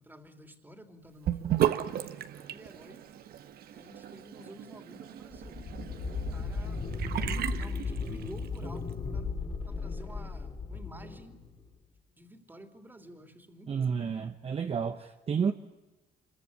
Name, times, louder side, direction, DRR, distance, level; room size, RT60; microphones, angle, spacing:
voice 1, 0.0-3.1 3.7-6.9 7.5-9.3 9.6-11.4 12.1-13.9, right 1 dB, 10° right, 6 dB, 3.1 m, -51 dB
Sink (filling or washing) / Bathtub (filling or washing), 1.2-8.6, right 11 dB, 65° right, 1.5 m, -35 dB
sound 1, 5.3-11.8, left 4 dB, 30° left, 3.0 m, -36 dB
voice 2, 13.7-15.5, right 6 dB, 35° right, 6 dB, 1.1 m, -30 dB
26.0 x 22.5 x 9.7 m, 1.0 s
cardioid pair, 110°, 17 cm